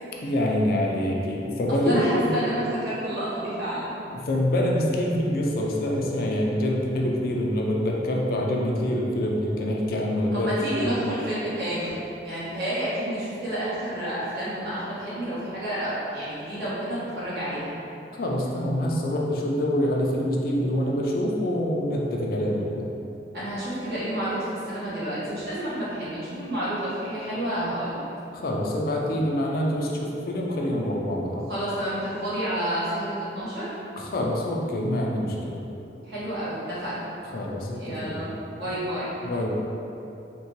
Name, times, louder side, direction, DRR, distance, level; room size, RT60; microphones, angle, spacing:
voice 1, 0.2-2.3 4.1-10.5 10.8-11.0 18.2-22.9 28.3-31.5 34.0-35.6 37.3-38.3 39.2-39.5, left 1 dB, 55° left, -1 dB, 0.4 m, -26 dB
voice 2, 1.8-3.9 10.3-17.7 23.3-28.0 31.5-33.7 36.0-37.0 37.7-39.1, right 1 dB, 65° right, -11 dB, 1.2 m, -30 dB
3.7 x 2.2 x 2.9 m, 2.9 s
head